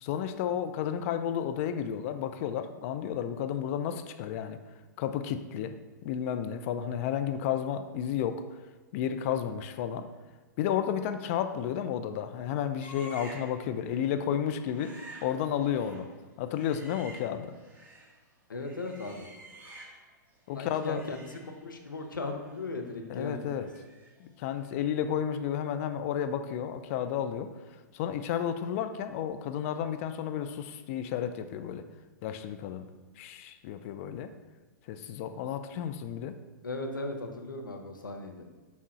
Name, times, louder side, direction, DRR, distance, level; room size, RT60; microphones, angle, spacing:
voice 1, 0.0-4.6 5.0-5.7 6.0-8.4 8.9-10.1 10.6-14.9 15.2-16.1 16.4-17.5 20.5-21.0 23.1-23.7 24.2-27.5 27.9-31.8 32.2-32.8 33.2-34.3 34.9-36.3, left 9 dB, 45° left, 9 dB, 0.5 m, -32 dB
sound 1, 12.8-13.6 13.9-14.1 14.5-18.1 18.5-20.2 20.4-24.2 24.5-24.7, right 1 dB, 15° right, 1.7 m, -51 dB
voice 2, 18.5-19.3 20.5-21.3 21.6-23.7 36.6-38.5, left 2 dB, 85° left, 4 dB, 1.0 m, -37 dB
6.2 x 3.6 x 5.5 m, 1.3 s
hypercardioid pair, 115°, 10 cm